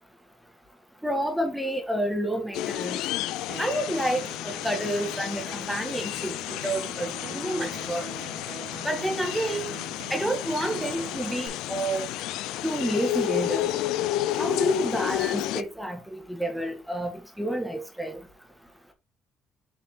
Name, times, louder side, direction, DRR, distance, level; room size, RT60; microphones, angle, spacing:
voice 1, 1.0-3.0 3.6-8.1 8.8-9.7 10.1-12.1 12.6-13.7 14.4-18.2, right 1 dB, ahead, 1.9 m, -29 dB
sound 1, 2.5-15.6, left 14 dB, 85° left, 0.4 m, -31 dB
Acoustic guitar, 3.5-11.5, right 7 dB, 65° right, 3.1 m, -42 dB
7.4 x 4.2 x 3.9 m
cardioid pair, 110°, 0 cm